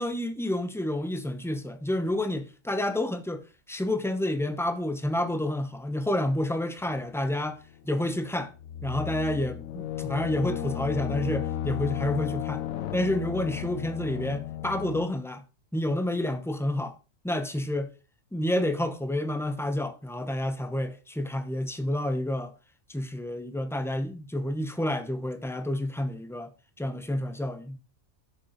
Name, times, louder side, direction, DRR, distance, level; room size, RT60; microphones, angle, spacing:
voice 1, 0.0-7.6 7.8-8.5 8.8-12.6 12.9-15.4 15.7-17.0 17.2-17.9 18.3-22.5 22.9-26.5 26.8-27.8, left 1 dB, 5° left, 0.5 m, -29 dB
sound 1, 6.8-7.6 8.5-15.1, left 11 dB, 80° left, 1.1 m, -34 dB
7.1 x 6.9 x 4.3 m
omnidirectional pair, 1.4 m